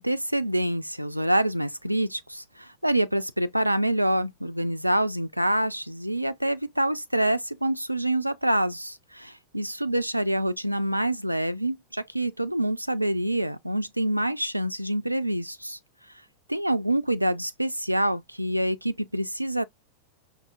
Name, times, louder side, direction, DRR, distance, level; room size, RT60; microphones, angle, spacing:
voice 1, 0.0-15.8 16.5-19.6, right 1 dB, 90° right, 0.3 m, -26 dB
5.4 x 2.5 x 2.4 m
figure-of-eight pair, 90°, 0 cm